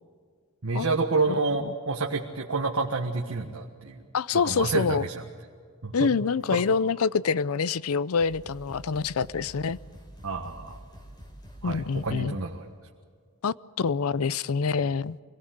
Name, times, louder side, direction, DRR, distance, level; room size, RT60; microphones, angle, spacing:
voice 1, 0.6-4.0 4.4-5.2 5.8-6.1 6.5-6.6 10.2-10.8 11.6-12.7, right 3 dB, 70° right, 1 dB, 1.5 m, -28 dB
voice 2, 4.1-5.0 5.9-9.8 11.6-12.3 13.4-15.2, left 5 dB, 70° left, 19 dB, 0.5 m, -26 dB
sound 1, 6.4-7.0 7.8-7.9 8.2-12.4, equal, 20° left, 4.2 m, -47 dB
25.0 x 18.5 x 8.0 m, 2.1 s
head